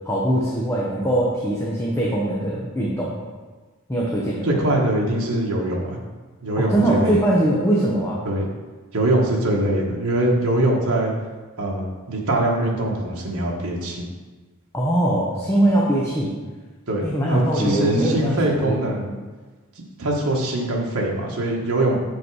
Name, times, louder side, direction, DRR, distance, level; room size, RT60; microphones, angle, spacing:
voice 1, 0.0-3.2 3.9-4.5 6.6-8.2 14.7-16.3 17.0-18.8, right 1 dB, 15° left, -5 dB, 0.9 m, -21 dB
voice 2, 4.4-6.0 6.4-7.2 8.2-8.5 8.9-11.1 11.6-14.1 16.9-19.2 19.8-22.0, right 1 dB, 80° right, -2 dB, 1.3 m, -22 dB
7.5 x 5.2 x 4.8 m, 1.3 s
head